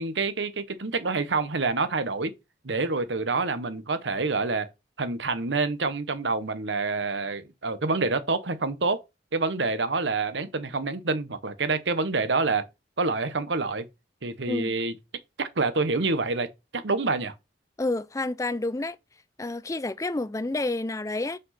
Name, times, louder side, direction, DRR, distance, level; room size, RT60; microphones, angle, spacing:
voice 1, 0.0-2.3 2.6-4.7 5.0-9.0 9.3-12.6 13.0-13.8 14.2-14.9 15.4-16.5 16.7-17.3, right 3 dB, 75° right, 1.0 m, -27 dB
voice 2, 17.8-19.0 19.4-21.4, left 2 dB, 15° left, 0.4 m, -29 dB
6.0 x 5.4 x 5.7 m
head